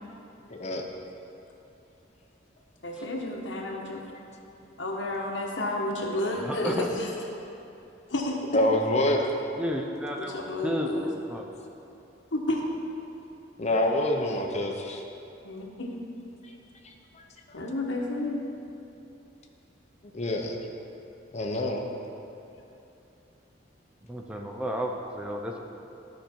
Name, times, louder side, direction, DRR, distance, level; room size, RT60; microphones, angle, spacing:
voice 1, 0.5-0.8 8.5-9.2 13.6-15.0 16.8-17.2 17.5-17.6 20.1-20.6 21.3-21.8, left 1 dB, 35° left, 1 dB, 0.8 m, -26 dB
voice 2, 2.8-4.0 4.8-7.1 8.1-8.4 10.2-11.2 12.3-12.6 15.4-15.9 17.5-18.4, left 2 dB, 70° left, 0 dB, 1.2 m, -31 dB
voice 3, 6.4-6.9 9.6-10.4 10.6-10.9 11.3-11.4 24.1-25.6, equal, 5° right, 1 dB, 0.5 m, -32 dB
13.0 x 5.2 x 4.4 m, 2.8 s
head